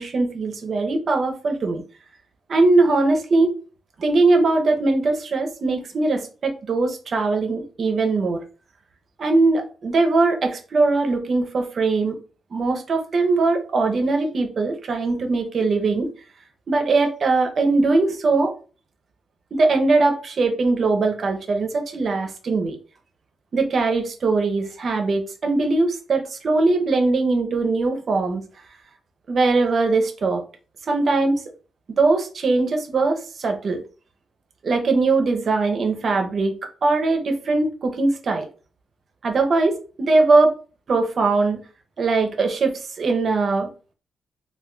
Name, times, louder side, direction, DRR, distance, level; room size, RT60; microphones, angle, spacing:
voice 1, 0.0-1.8 2.5-3.6 4.0-8.4 9.2-12.2 12.5-16.1 16.7-18.5 19.5-22.8 23.5-28.4 29.3-30.4 30.9-31.4 31.9-33.8 34.6-36.5 36.8-38.5 39.2-40.6 40.9-41.6 42.0-43.7, right 3 dB, 45° right, 4 dB, 0.6 m, -21 dB
2.3 x 2.2 x 3.7 m, 0.37 s
cardioid pair, 135°, 0 cm